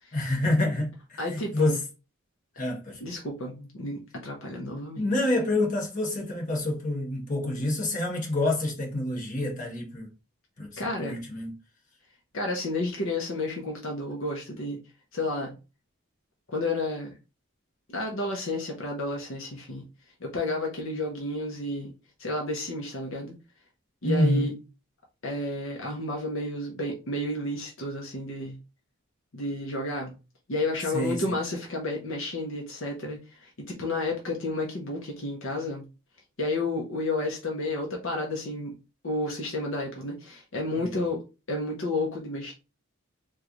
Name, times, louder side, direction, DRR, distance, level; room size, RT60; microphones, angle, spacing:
voice 1, 0.1-1.8 2.6-3.0 5.0-10.1 10.6-11.5 24.0-24.5 30.9-31.2 40.9-41.0, left 1 dB, 35° left, 1.0 m, -27 dB
voice 2, 1.2-1.8 3.0-5.0 10.8-11.3 12.3-14.8 15.1-15.6 16.5-17.2 17.9-19.8 20.2-21.9 22.2-23.3 24.0-24.5 25.2-28.6 29.3-30.2 30.5-35.9 36.4-38.7 39.0-41.2 41.5-42.5, left 2 dB, 60° left, 0.7 m, -31 dB
3.1 x 2.3 x 3.7 m
head